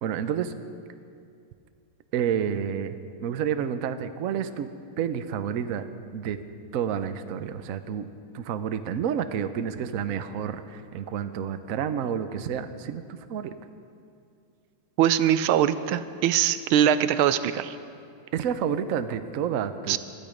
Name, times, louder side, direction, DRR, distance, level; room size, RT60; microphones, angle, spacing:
voice 1, 0.0-0.5 2.1-4.7 5.0-5.8 6.1-6.4 6.7-13.5 18.3-20.0, right 8 dB, 60° right, 10 dB, 0.9 m, -29 dB
voice 2, 15.0-17.8 19.9-20.0, right 10 dB, 90° right, 13 dB, 1.5 m, -22 dB
21.0 x 13.0 x 5.2 m, 2.4 s
omnidirectional pair, 2.2 m